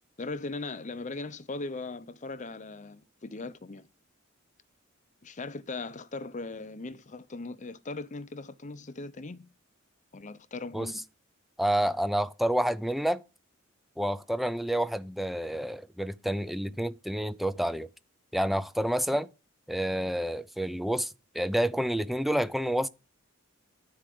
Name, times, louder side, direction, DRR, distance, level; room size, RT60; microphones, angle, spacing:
voice 1, 0.2-3.9 5.2-9.5 10.1-11.0, left 3 dB, 35° left, 0.7 m, -39 dB
voice 2, 11.6-13.2 14.0-17.9 18.3-19.3 19.7-22.9, equal, ahead, 0.5 m, -29 dB
11.5 x 4.8 x 7.7 m
head